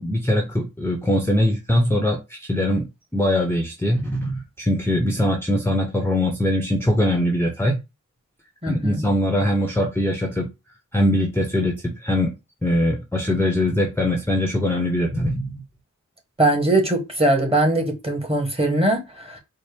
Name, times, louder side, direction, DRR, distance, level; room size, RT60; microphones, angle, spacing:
voice 1, 0.0-7.8 8.7-10.5 10.9-12.3 12.6-15.5, left 1 dB, 5° left, 0.8 m, -22 dB
voice 2, 8.6-9.0 16.4-19.4, right 2 dB, 15° right, 1.4 m, -21 dB
4.3 x 2.0 x 3.4 m
wide cardioid pair, 60°, 32 cm